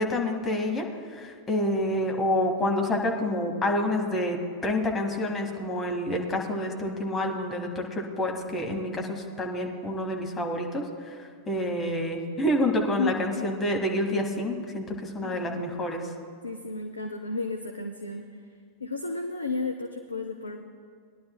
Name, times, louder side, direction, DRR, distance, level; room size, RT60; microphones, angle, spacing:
voice 1, 0.0-11.1 11.5-16.1, left 1 dB, 20° left, 1 dB, 1.6 m, -28 dB
voice 2, 13.0-13.4 15.2-15.5 16.4-18.3 18.8-20.6, left 3 dB, 80° left, 5 dB, 0.6 m, -33 dB
20.0 x 11.0 x 2.2 m, 2.1 s
figure-of-eight pair, 90°, 0 cm